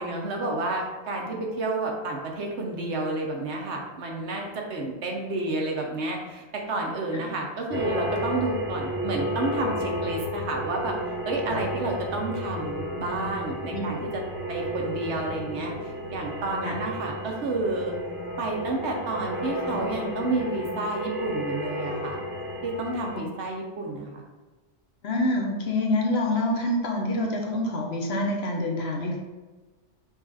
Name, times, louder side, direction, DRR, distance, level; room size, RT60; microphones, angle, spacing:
voice 1, 0.0-11.0 11.2-14.2 14.5-17.9 18.4-22.2 22.6-24.2, right 2 dB, 70° right, 0 dB, 1.1 m, -30 dB
sound 1, 7.7-23.2, equal, 15° right, 0.4 m, -32 dB
voice 2, 13.7-14.1 16.6-16.8 25.0-29.2, left 1 dB, 65° left, 1 dB, 1.0 m, -27 dB
5.3 x 2.4 x 3.9 m, 1.2 s
omnidirectional pair, 1.2 m